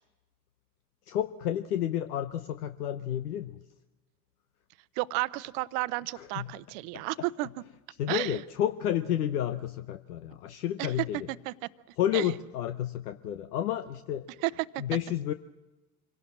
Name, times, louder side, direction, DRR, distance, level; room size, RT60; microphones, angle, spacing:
voice 1, 1.1-3.6 6.1-6.5 6.9-7.5 8.0-11.3 12.0-14.3 14.8-15.3, left 11 dB, 80° left, 10 dB, 0.9 m, -31 dB
voice 2, 5.0-7.5 8.1-8.4 11.5-11.6 12.1-12.3 14.4-14.8, right 21 dB, 65° right, 16 dB, 0.9 m, -32 dB
25.0 x 18.0 x 7.5 m, 1.1 s
hypercardioid pair, 70°, 45 cm